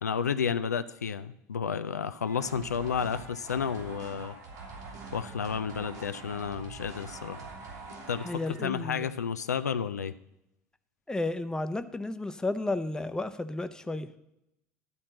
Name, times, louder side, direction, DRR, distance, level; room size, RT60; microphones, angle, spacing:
voice 1, 0.0-4.4 5.1-7.4 8.1-10.1, left 7 dB, 85° left, 11 dB, 0.4 m, -31 dB
sound 1, 2.3-8.8, right 3 dB, 75° right, 2.6 m, -44 dB
voice 2, 8.2-9.1 11.1-14.1, left 2 dB, 10° left, 10 dB, 0.7 m, -32 dB
12.0 x 4.4 x 7.4 m, 0.85 s
figure-of-eight pair, 70°, 9 cm